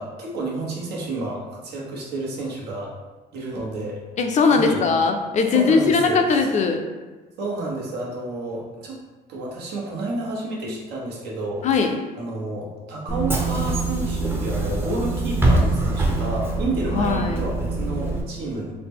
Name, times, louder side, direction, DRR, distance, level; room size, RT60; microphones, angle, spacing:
voice 1, 0.0-2.9 3.3-4.0 4.5-4.8 5.5-6.5 7.4-9.0 9.3-11.9 12.2-18.7, right 2 dB, 75° right, -3 dB, 1.0 m, -30 dB
voice 2, 4.2-6.8 11.6-11.9 16.9-17.4, left 4 dB, 45° left, 4 dB, 0.4 m, -20 dB
Bus / Engine, 13.1-18.2, right 2 dB, 15° right, 0.6 m, -23 dB
3.9 x 2.1 x 3.6 m, 1.2 s
cardioid pair, 110°, 17 cm